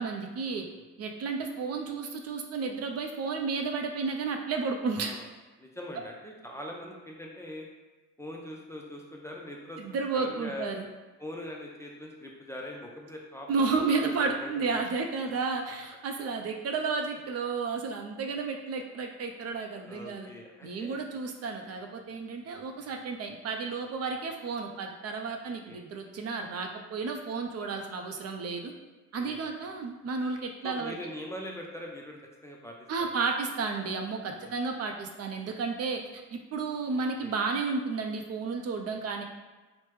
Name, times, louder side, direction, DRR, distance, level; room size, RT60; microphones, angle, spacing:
voice 1, 0.0-0.6 1.0-5.1 9.8-10.8 13.5-20.3 20.6-28.7 29.1-30.9 32.9-39.2, right 4 dB, 55° right, 3 dB, 0.4 m, -32 dB
voice 2, 0.6-0.9 4.9-5.3 5.6-7.7 8.2-10.7 11.2-13.7 14.0-14.8 19.8-21.0 22.8-23.0 25.4-25.8 29.1-29.5 30.6-33.1 34.4-34.5 36.9-37.4, left 1 dB, 10° left, -1 dB, 0.4 m, -43 dB
3.1 x 2.0 x 3.1 m, 1.2 s
cardioid pair, 90°, 30 cm